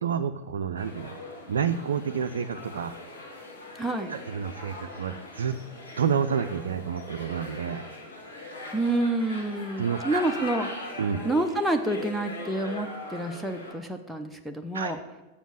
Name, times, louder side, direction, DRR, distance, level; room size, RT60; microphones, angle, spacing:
voice 1, 0.0-1.2 1.5-3.0 4.1-5.6 6.0-7.8 9.8-10.2 11.0-11.2 14.7-14.9, right 7 dB, 65° right, 7 dB, 0.4 m, -29 dB
sound 1, 0.8-13.7, left 2 dB, 75° left, 2.3 m, -40 dB
voice 2, 3.8-4.1 8.7-10.7 11.2-15.0, right 2 dB, ahead, 3 dB, 0.7 m, -28 dB
7.1 x 7.0 x 7.4 m, 1.2 s
figure-of-eight pair, 90°, 0 cm